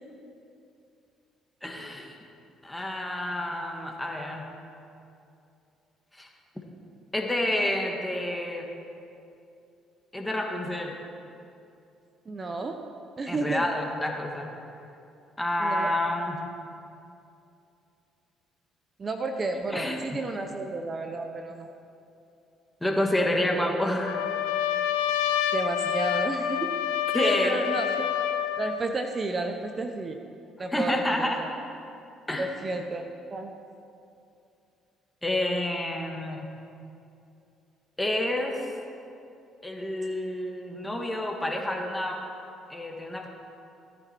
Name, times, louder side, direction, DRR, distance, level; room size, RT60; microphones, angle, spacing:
voice 1, 1.6-2.2 2.6-4.4 6.1-6.3 7.1-8.7 10.1-11.0 13.3-14.5 15.4-16.4 19.7-20.0 22.8-24.2 27.1-27.6 30.6-31.4 32.3-32.5 35.2-36.5 38.0-38.6 39.6-42.2 42.7-43.3, left 1 dB, 10° left, 1 dB, 2.2 m, -29 dB
voice 2, 12.3-12.8 13.2-13.6 15.6-15.9 19.0-21.7 25.5-26.7 27.2-27.9 28.6-30.2 30.6-31.5 32.4-33.5, right 2 dB, 35° right, 5 dB, 1.0 m, -31 dB
Trumpet, 24.0-28.8, left 10 dB, 85° left, 0.6 m, -28 dB
16.5 x 9.9 x 4.7 m, 2.6 s
supercardioid pair, 60°, 0 cm